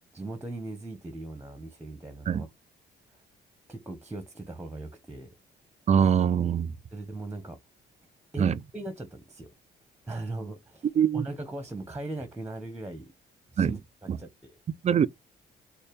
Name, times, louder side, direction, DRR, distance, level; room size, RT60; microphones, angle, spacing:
voice 1, 0.1-2.5 3.1-3.2 3.7-5.3 6.9-7.6 8.3-9.5 10.0-13.1 13.5-14.6, right 2 dB, 10° right, 0.9 m, -39 dB
voice 2, 5.9-6.7 8.4-8.5 11.0-11.2 13.6-13.8 14.1-14.2 14.8-15.1, right 8 dB, 35° right, 0.4 m, -23 dB
4.1 x 2.1 x 3.4 m
cardioid pair, 90°, 20 cm